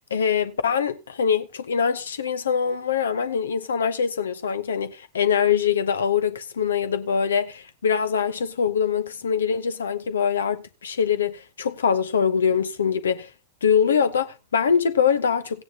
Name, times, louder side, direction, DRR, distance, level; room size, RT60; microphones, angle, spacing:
voice 1, 0.1-13.3 13.6-15.6, left 7 dB, 70° left, 1.0 m, -23 dB
16.0 x 9.5 x 2.9 m
figure-of-eight pair, 90°, 0 cm